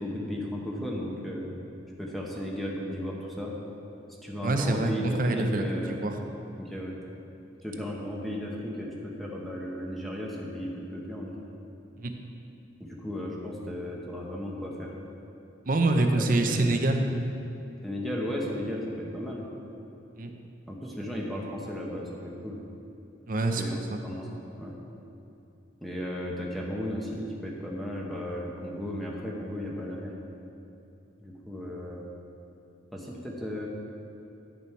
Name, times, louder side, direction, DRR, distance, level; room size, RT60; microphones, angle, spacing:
voice 1, 0.0-1.5 2.0-3.5 4.2-6.0 6.6-6.9 7.6-11.3 12.8-14.9 16.1-16.8 17.8-19.5 20.7-22.6 23.6-24.3 24.6-24.7 25.8-30.1 31.2-32.0 32.9-33.7, equal, ahead, -3 dB, 1.0 m, -35 dB
voice 2, 4.4-4.9 5.2-6.2 12.0-12.1 15.7-17.1 20.2-20.3 23.3-23.6 23.9-24.0, right 2 dB, 50° right, 5 dB, 0.7 m, -25 dB
11.0 x 6.9 x 4.5 m, 2.8 s
head